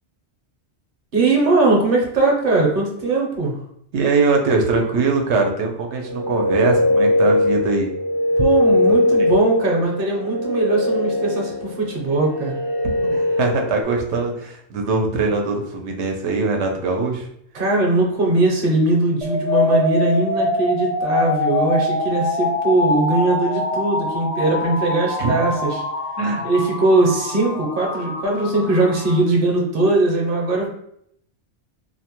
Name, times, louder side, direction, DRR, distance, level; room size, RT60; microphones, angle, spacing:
voice 1, 1.1-3.6 8.4-12.6 17.5-25.8 26.4-30.7, right 2 dB, 55° right, -1 dB, 0.8 m, -20 dB
voice 2, 3.9-7.9 13.0-17.3 25.2-25.4 26.2-26.5, right 3 dB, 90° right, 2 dB, 0.9 m, -21 dB
sound 1, 6.0-13.8, left 1 dB, 25° right, 0.4 m, -20 dB
sound 2, 19.2-29.2, left 2 dB, 50° left, 0.4 m, -24 dB
2.6 x 2.1 x 2.9 m, 0.71 s
omnidirectional pair, 1.1 m